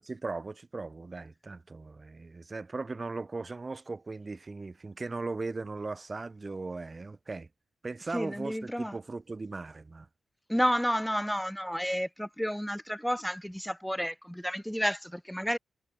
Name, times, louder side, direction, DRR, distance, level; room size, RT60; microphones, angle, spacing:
voice 1, 0.0-7.5 7.8-10.1, right 3 dB, 30° right, 6.9 m, -38 dB
voice 2, 8.1-8.9 10.5-15.6, equal, ahead, 1.4 m, -31 dB
wide cardioid pair, 120°, 0 cm